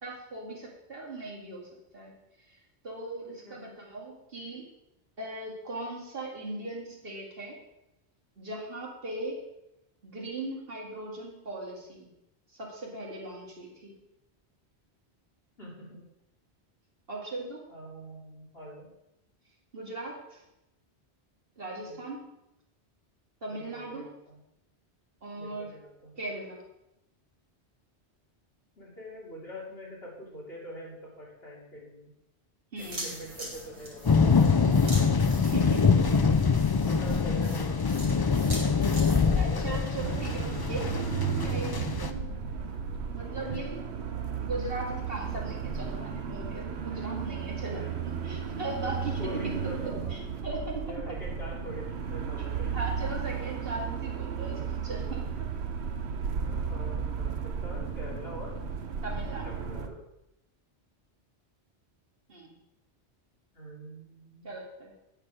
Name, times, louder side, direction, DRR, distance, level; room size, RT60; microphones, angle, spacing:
voice 1, 0.0-2.1 2.5-2.6 2.8-4.7 5.2-7.6 8.4-9.4 10.0-12.1 12.5-13.9 17.1-17.6 19.7-20.4 21.6-22.2 23.4-24.1 25.2-25.7 26.2-26.6 32.7-33.1 35.4-35.9 39.3-42.3 43.1-43.8 44.4-49.6 50.1-51.0 52.7-55.3 59.0-59.6 62.3-62.5 64.4-64.9, right 2 dB, 60° right, -2 dB, 2.4 m, -38 dB
voice 2, 3.2-3.6 15.6-16.1 17.7-18.9 21.8-22.0 23.5-24.4 25.3-26.1 28.8-32.1 32.8-34.6 36.0-38.1 39.0-39.8 43.2-43.6 46.9-47.1 47.7-47.9 49.2-50.1 50.8-52.7 56.2-58.5 59.4-60.0 63.5-64.5, equal, 65° left, -5 dB, 3.2 m, -44 dB
sound 1, 32.8-39.2, right 1 dB, 30° right, 2.7 m, -42 dB
sound 2, 34.0-42.1, left 5 dB, 40° left, 0.3 m, -24 dB
sound 3, 40.0-59.9, right 6 dB, 75° right, 1.1 m, -34 dB
8.9 x 8.9 x 4.9 m, 0.87 s
omnidirectional pair, 1.1 m